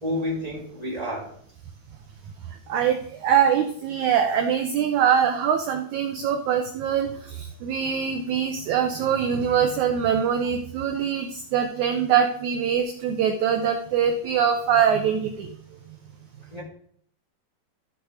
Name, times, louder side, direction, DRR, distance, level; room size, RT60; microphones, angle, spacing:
voice 1, 0.0-1.3 16.5-16.6, left 1 dB, 10° left, 2.8 m, -29 dB
voice 2, 2.5-15.5, right 8 dB, 80° right, 1.7 m, -23 dB
14.0 x 4.8 x 4.9 m
omnidirectional pair, 4.2 m